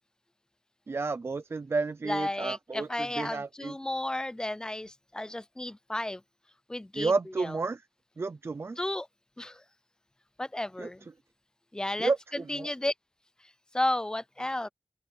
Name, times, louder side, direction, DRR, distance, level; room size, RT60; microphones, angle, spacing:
voice 1, 0.9-3.7 6.9-7.8 8.2-8.8 10.8-10.9 12.0-12.7, right 4 dB, 45° right, 0.6 m, -31 dB
voice 2, 2.0-6.2 6.7-7.1 7.4-7.6 8.8-9.1 9.4-9.6 10.4-11.1 11.7-12.9 13.7-14.7, left 1 dB, 15° left, 0.5 m, -33 dB
open air
wide cardioid pair, 90°, 6 cm